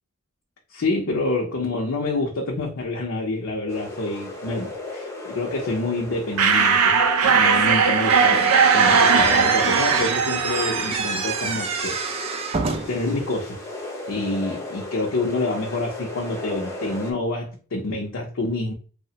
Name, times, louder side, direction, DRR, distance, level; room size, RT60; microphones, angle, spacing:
voice 1, 0.7-7.0 7.3-8.5 8.7-12.0 12.9-13.6 14.1-18.7, left 2 dB, 65° left, 0.5 m, -27 dB
sound 1, 3.7-17.1, left 2 dB, 15° left, 0.6 m, -36 dB
sound 2, 6.4-11.9, right 6 dB, 90° right, 0.4 m, -19 dB
Slam / Squeak, 8.1-13.1, right 4 dB, 30° right, 0.4 m, -28 dB
3.1 x 2.0 x 2.7 m
head